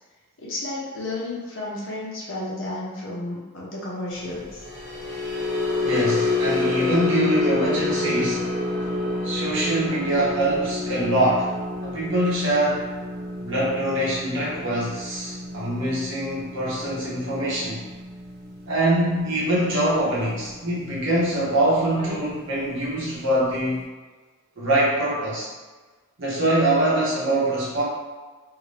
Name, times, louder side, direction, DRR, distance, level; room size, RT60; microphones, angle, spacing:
voice 1, 0.4-4.7 22.0-22.1, left 2 dB, 70° left, -5 dB, 0.9 m, -32 dB
sound 1, 4.5-20.9 21.2-21.5 21.9-22.1, left 2 dB, 45° right, 0.7 m, -29 dB
voice 2, 5.8-8.5 9.2-11.5 11.8-12.9 13.4-17.9 18.7-23.8 24.6-25.5 26.2-27.8, right 1 dB, 65° right, -8 dB, 1.0 m, -24 dB
2.8 x 2.7 x 3.2 m, 1.3 s
head